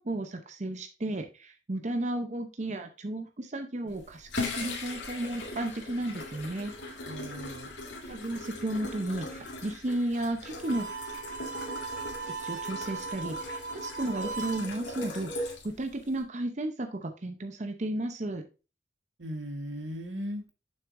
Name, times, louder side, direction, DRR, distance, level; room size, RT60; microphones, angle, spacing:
voice 1, 0.0-6.7 8.1-10.9 12.4-18.4, right 1 dB, 40° right, 5 dB, 0.7 m, -33 dB
sound 1, 3.9-16.2, left 2 dB, 80° left, 1.9 m, -40 dB
voice 2, 7.0-7.7 19.2-20.5, equal, 85° right, 6 dB, 1.5 m, -37 dB
Harmonica, 10.6-14.7, right 4 dB, 65° right, 1.1 m, -38 dB
7.0 x 6.3 x 2.6 m, 0.32 s
head